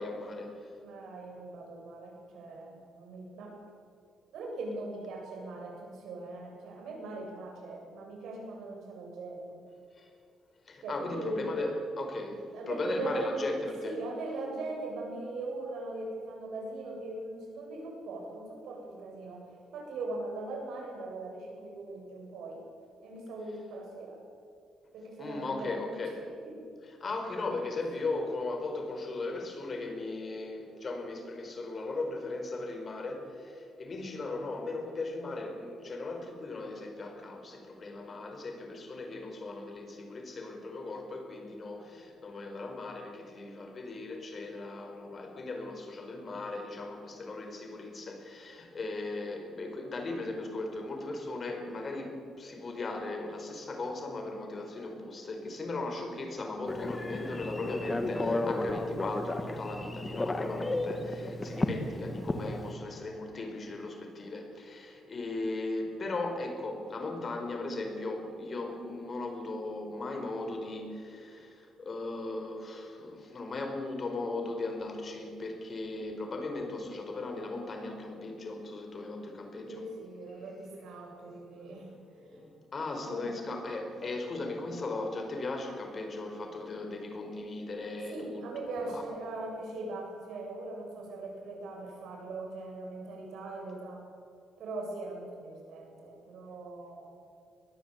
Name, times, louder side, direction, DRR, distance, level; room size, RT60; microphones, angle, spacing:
voice 1, 0.0-0.8 9.9-10.1 10.6-14.0 25.2-26.2 26.8-79.9 80.3-80.6 81.2-88.4 88.9-89.0, left 2 dB, 35° left, 4 dB, 4.6 m, -37 dB
voice 2, 0.8-3.6 4.3-9.6 10.8-11.7 12.5-13.5 13.8-22.6 23.0-24.2 24.9-26.0 26.4-26.5 79.7-81.9 82.9-83.3 84.0-84.1 88.1-94.1 94.6-97.1, right 2 dB, 80° right, 0 dB, 7.9 m, -40 dB
Telephone, 56.7-62.7, left 2 dB, 20° left, 1.9 m, -33 dB
22.5 x 20.5 x 8.3 m, 2.4 s
cardioid pair, 120°, 0 cm